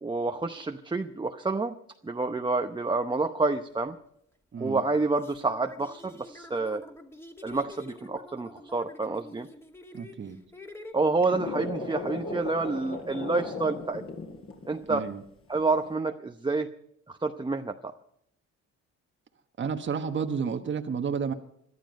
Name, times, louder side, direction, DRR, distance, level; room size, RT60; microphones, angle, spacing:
voice 1, 0.0-1.7 2.0-4.0 4.6-6.8 7.4-9.5 10.9-14.0 14.7-15.0 15.5-16.7 17.1-17.9, right 3 dB, 15° right, 6 dB, 0.7 m, -28 dB
sound 1, 3.8-3.9 4.6-10.9, left 1 dB, 10° left, 2.2 m, -48 dB
voice 2, 9.9-10.4 14.9-15.2 19.6-21.3, right 6 dB, 40° right, 6 dB, 1.2 m, -31 dB
sound 2, 11.0-15.1 15.6-15.9, left 3 dB, 45° left, 4.6 m, -36 dB
21.5 x 12.5 x 5.3 m, 0.71 s
cardioid pair, 90°, 30 cm